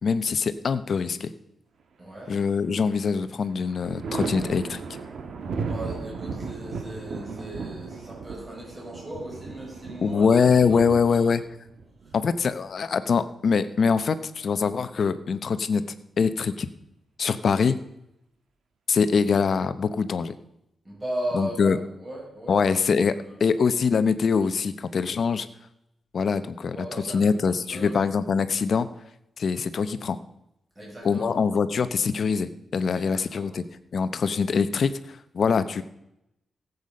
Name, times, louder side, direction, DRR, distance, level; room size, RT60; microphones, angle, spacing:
voice 1, 0.0-1.3 2.3-4.8 10.0-11.4 12.1-15.8 16.2-16.7 17.2-17.8 18.9-20.4 21.3-21.8 22.5-25.5 26.1-26.9 27.1-28.9 29.4-30.2 31.0-33.6 33.9-35.8, left 5 dB, 55° left, 12 dB, 0.8 m, -23 dB
voice 2, 2.0-2.3 5.5-10.4 10.7-11.3 12.0-12.2 20.8-22.6 23.1-23.5 26.7-27.3 27.7-28.0 30.7-31.3 32.9-33.5, right 1 dB, 25° right, -4 dB, 6.4 m, -37 dB
Thunder, 2.2-3.0 3.4-13.0 14.4-15.3, right 4 dB, 70° right, 1.5 m, -36 dB
16.5 x 8.2 x 5.4 m, 0.84 s
wide cardioid pair, 120°, 0 cm